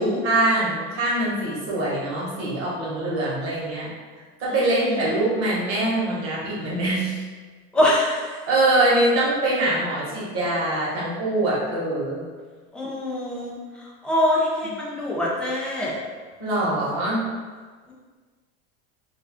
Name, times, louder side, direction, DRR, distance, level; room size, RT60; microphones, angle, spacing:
voice 1, 0.0-3.9 4.4-7.2 8.5-12.2 16.4-17.2, right 2 dB, 45° right, -6 dB, 1.1 m, -23 dB
voice 2, 4.6-5.2 7.7-8.3 12.7-13.6 14.0-15.9, left 1 dB, 5° left, -5 dB, 0.4 m, -24 dB
2.5 x 2.2 x 3.5 m, 1.5 s
supercardioid pair, 145°, 31 cm